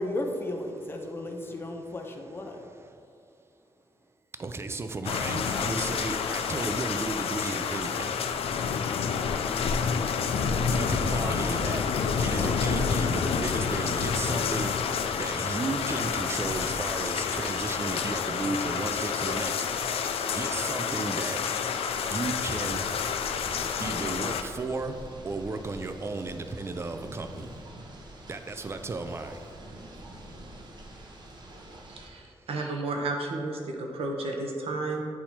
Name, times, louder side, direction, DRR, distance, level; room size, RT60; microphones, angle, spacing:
voice 1, 0.0-2.6, left 1 dB, 20° left, 3 dB, 0.6 m, -34 dB
voice 2, 2.5-3.1 4.4-8.2 10.7-11.9 12.1-14.9 15.2-21.4 22.1-22.8 23.8-25.0 25.2-27.5 28.3-29.5, right 3 dB, 25° right, 8 dB, 0.4 m, -34 dB
sound 1, 5.0-24.4, left 6 dB, 75° left, 0.4 m, -29 dB
sound 2, 22.5-32.1, right 1 dB, 45° right, 0.8 m, -45 dB
voice 3, 31.9-35.0, right 2 dB, 75° right, 2 dB, 0.8 m, -32 dB
8.3 x 2.8 x 4.3 m, 2.5 s
wide cardioid pair, 110°, 10 cm